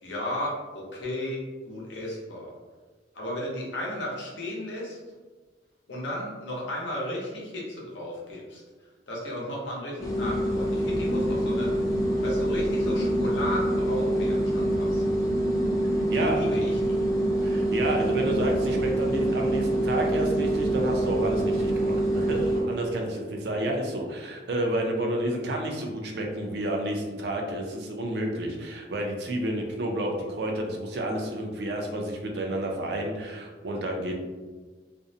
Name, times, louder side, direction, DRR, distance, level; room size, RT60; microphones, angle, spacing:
voice 1, 0.0-1.4 1.6-2.5 3.1-5.0 5.9-8.6 9.1-11.7 12.2-15.0 16.1-17.0, left 1 dB, 80° left, -4 dB, 0.7 m, -34 dB
sound 1, 10.0-22.7, right 1 dB, 20° left, 0.4 m, -25 dB
voice 2, 16.1-16.4 17.4-34.2, right 1 dB, 65° right, 1 dB, 0.4 m, -30 dB
2.5 x 2.0 x 2.6 m, 1.3 s
head